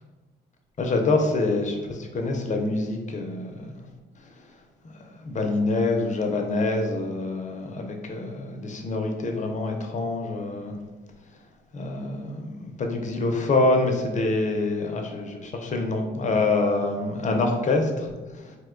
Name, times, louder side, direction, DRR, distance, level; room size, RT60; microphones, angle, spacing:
voice 1, 0.8-3.7 5.2-10.8 11.7-18.6, left 2 dB, 40° left, 3 dB, 0.5 m, -26 dB
2.7 x 2.2 x 3.7 m, 1.2 s
cardioid pair, 90°, 20 cm